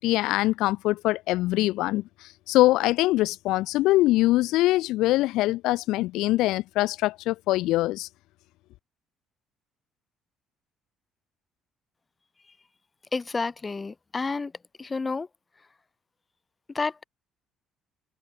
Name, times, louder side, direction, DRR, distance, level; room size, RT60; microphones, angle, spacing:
voice 1, 0.0-8.1, left 17 dB, 75° left, 1.0 m, -23 dB
voice 2, 13.1-14.5 14.8-15.3 16.7-17.0, left 4 dB, 15° left, 3.5 m, -30 dB
cardioid pair, 175°, 0 cm